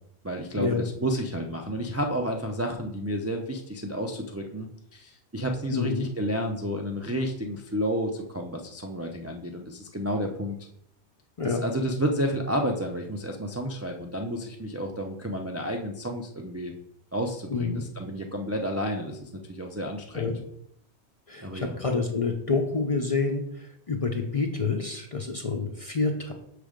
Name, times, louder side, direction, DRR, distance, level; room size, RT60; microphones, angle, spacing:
voice 1, 0.2-10.6 11.4-16.7 17.1-20.3 21.4-21.8, equal, 25° right, 2 dB, 0.3 m, -31 dB
voice 2, 5.7-6.1 11.4-11.6 17.5-17.8 20.1-20.4 21.3-26.3, left 4 dB, 40° left, 3 dB, 0.5 m, -28 dB
6.3 x 3.3 x 5.0 m, 0.73 s
omnidirectional pair, 1.1 m